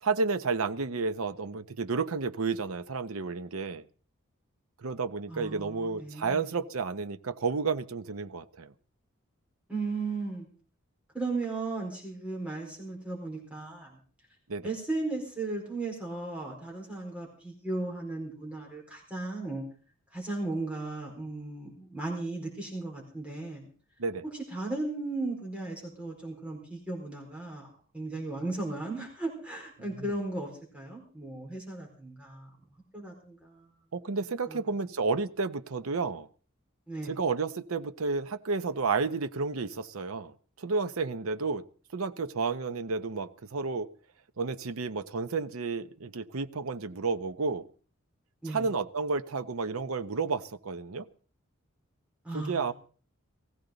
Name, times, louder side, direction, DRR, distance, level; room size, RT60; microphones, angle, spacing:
voice 1, 0.0-3.8 4.8-8.7 14.5-14.7 24.0-24.2 33.9-36.3 37.0-40.3 40.6-41.6 41.9-43.9 44.4-47.7 48.5-51.1 52.3-52.7, right 4 dB, 85° right, 0.8 m, -31 dB
voice 2, 5.3-6.5 9.7-10.5 11.1-14.0 14.6-19.6 20.1-23.7 24.5-32.5 32.9-33.7 34.5-34.6 36.9-37.1 48.4-48.7 52.2-52.7, right 2 dB, 5° right, 4.5 m, -36 dB
19.0 x 15.5 x 3.9 m
head